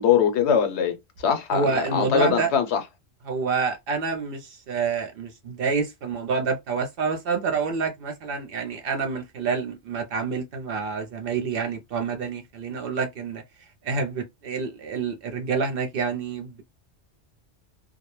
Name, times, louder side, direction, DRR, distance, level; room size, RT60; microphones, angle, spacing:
voice 1, 0.0-2.8, left 8 dB, 70° left, 0.9 m, -22 dB
voice 2, 1.5-2.5 3.3-13.4 13.8-16.6, right 5 dB, 65° right, 0.7 m, -28 dB
2.2 x 2.0 x 2.9 m
omnidirectional pair, 1.2 m